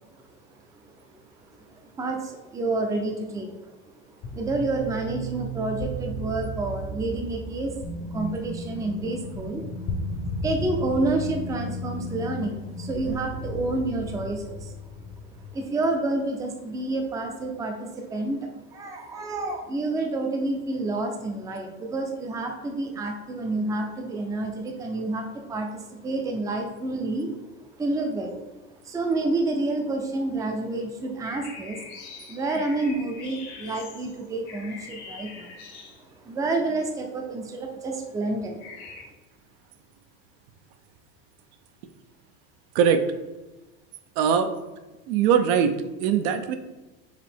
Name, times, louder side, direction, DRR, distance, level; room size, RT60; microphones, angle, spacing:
voice 1, 2.0-3.6 4.3-7.8 8.1-9.7 10.2-14.7 15.5-27.3 27.8-28.4 28.8-31.9 32.3-35.5 36.2-38.8, right 2 dB, 10° right, 3 dB, 0.4 m, -29 dB
sound 1, 4.2-15.5, equal, 40° left, 0.7 m, -34 dB
sound 2, 31.2-36.3 38.6-39.0, left 4 dB, 60° left, 1.0 m, -43 dB
voice 2, 44.2-44.5 45.1-45.7 46.0-46.6, right 7 dB, 70° right, 8 dB, 0.5 m, -21 dB
4.8 x 2.7 x 3.5 m, 1.1 s
supercardioid pair, 135°, 31 cm